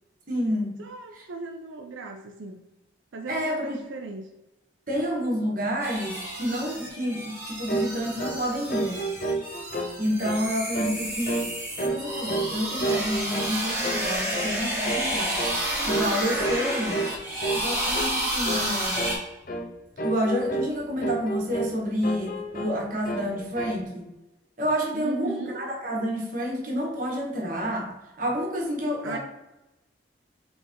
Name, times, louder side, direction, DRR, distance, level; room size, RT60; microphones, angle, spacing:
voice 1, 0.3-0.8 3.3-3.8 4.9-9.1 10.0-11.5 11.8-15.4 15.8-17.0 17.5-19.2 20.0-24.1 24.6-27.9 28.2-29.2, equal, 45° right, -1 dB, 1.3 m, -29 dB
voice 2, 0.8-2.6 3.1-4.3 24.9-25.6 29.0-29.2, right 3 dB, 90° right, 2 dB, 0.5 m, -37 dB
sound 1, 5.8-19.2, right 1 dB, 15° right, 1.3 m, -30 dB
sound 2, 7.7-7.9 8.2-8.4 8.7-9.9 10.2-10.5 10.7-11.0 11.3-11.5 11.8-12.5 12.8-13.6 13.8-14.1 14.3-14.6 14.8-15.1 15.4-15.6 15.9-16.1 16.4-16.6 16.9-17.1 17.4-17.7 17.9-18.1 18.5-18.7 19.0-19.2 19.5-19.7 20.0-20.7 21.0-21.8 22.0-22.8 23.1-23.8, right 2 dB, 45° left, 0.6 m, -30 dB
4.2 x 3.4 x 3.6 m, 1.0 s
head